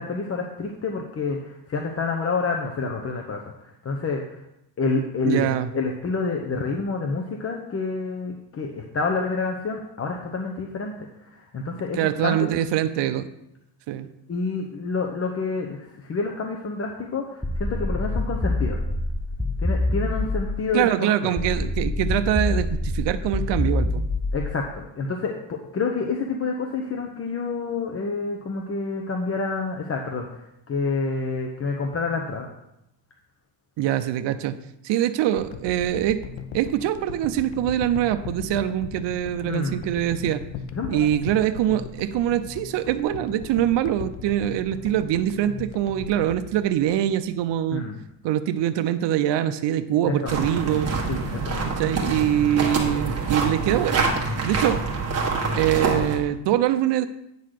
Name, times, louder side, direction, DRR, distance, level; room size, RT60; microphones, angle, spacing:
voice 1, 0.0-4.4 4.8-12.5 14.3-18.8 19.6-21.3 24.3-32.5 39.5-39.8 40.7-41.1 47.7-48.0 50.0-50.3 51.1-51.8, left 4 dB, 30° left, 1 dB, 1.0 m, -28 dB
voice 2, 5.2-5.7 11.9-13.3 13.9-14.1 20.7-24.0 33.8-34.5 34.8-36.2 36.5-40.4 40.9-47.8 48.2-50.9 51.8-54.0 54.4-54.8 55.6-57.1, right 11 dB, 65° right, 9 dB, 0.7 m, -23 dB
sound 1, 17.4-20.7 21.4-24.7, left 2 dB, 5° left, 0.4 m, -26 dB
sound 2, 35.4-47.6 48.1-48.2, left 7 dB, 80° left, 0.9 m, -38 dB
sound 3, 50.3-56.2, right 3 dB, 30° right, 1.8 m, -26 dB
9.3 x 4.0 x 6.5 m, 0.83 s
cardioid pair, 115°, 46 cm